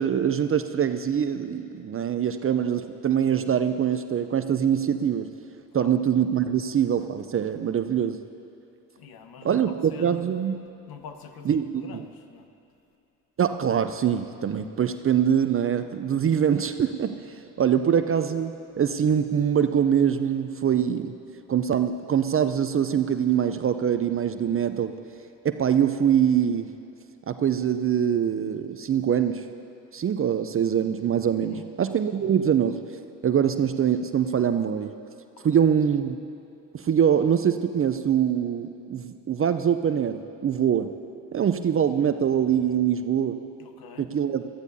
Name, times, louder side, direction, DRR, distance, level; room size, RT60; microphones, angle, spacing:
voice 1, 0.0-5.3 5.7-8.2 9.4-10.6 11.5-12.1 13.4-17.2 17.6-21.1 21.5-24.9 25.4-26.7 27.3-29.4 29.9-32.8 33.2-34.9 35.4-36.2 36.7-40.9 41.3-43.4 44.0-44.4, right 8 dB, 30° right, 9 dB, 0.6 m, -24 dB
voice 2, 9.0-10.2 10.9-12.5 31.4-31.7 35.5-35.7 43.6-44.1, left 6 dB, 50° left, 7 dB, 1.2 m, -45 dB
21.0 x 14.0 x 2.7 m, 2.7 s
hypercardioid pair, 60°, 46 cm